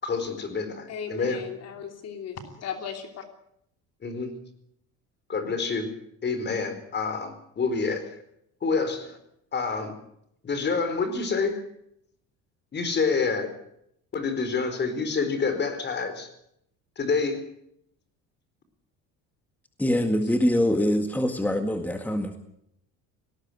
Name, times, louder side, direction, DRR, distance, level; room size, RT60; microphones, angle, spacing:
voice 1, 0.0-1.4 4.0-4.3 5.3-5.9 6.2-8.0 8.6-9.2 9.5-9.9 10.4-11.6 12.7-13.5 14.1-16.3 17.0-17.4, left 4 dB, 35° left, 10 dB, 4.6 m, -27 dB
voice 2, 0.9-3.2, left 7 dB, 55° left, 6 dB, 3.0 m, -36 dB
voice 3, 19.8-22.4, left 1 dB, 5° left, 6 dB, 1.9 m, -24 dB
19.0 x 17.5 x 8.1 m, 0.74 s
cardioid pair, 115°, 31 cm